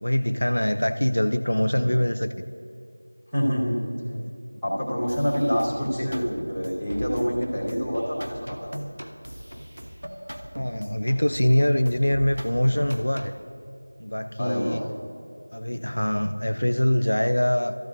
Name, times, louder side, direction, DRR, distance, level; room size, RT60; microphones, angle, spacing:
voice 1, 0.0-2.3 4.1-4.3 6.0-6.2 10.6-13.3 14.0-14.9 15.5-17.7, left 1 dB, 70° left, 8 dB, 0.6 m, -24 dB
voice 2, 3.3-3.8 4.6-8.7 14.4-14.9, equal, ahead, -24 dB, 2.6 m, -27 dB
sound 1, 5.1-13.4, equal, 80° right, 1.1 m, -39 dB
22.0 x 14.5 x 2.7 m, 2.6 s
figure-of-eight pair, 175°, 0 cm